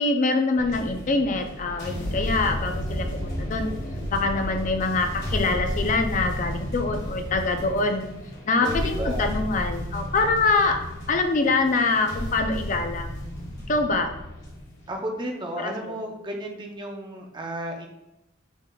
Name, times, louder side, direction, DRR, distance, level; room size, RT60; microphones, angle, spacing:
voice 1, 0.0-3.7 4.1-8.1 8.5-10.8 11.1-13.1 13.7-14.2 15.6-16.0, left 3 dB, 40° left, 6 dB, 0.4 m, -24 dB
sound 1, 0.6-14.9, equal, 55° left, 1.6 m, -32 dB
voice 2, 8.6-9.3 14.9-17.9, equal, 25° right, 2 dB, 0.6 m, -33 dB
6.2 x 3.6 x 2.2 m, 0.92 s
head